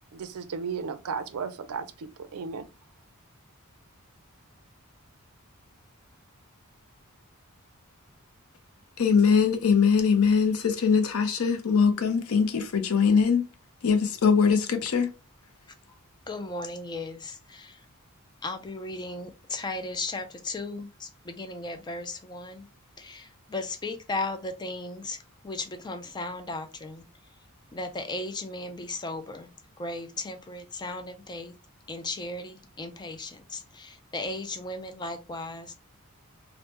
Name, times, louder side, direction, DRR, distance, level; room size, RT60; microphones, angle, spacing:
voice 1, 0.1-2.7, right 5 dB, 75° right, 0.4 m, -35 dB
voice 2, 9.0-13.5 13.8-15.1, left 6 dB, 70° left, 0.6 m, -22 dB
voice 3, 16.3-17.9 18.4-22.7 23.0-27.0 27.7-31.5 31.9-35.7, left 2 dB, 20° left, 0.4 m, -36 dB
3.3 x 2.0 x 2.9 m
head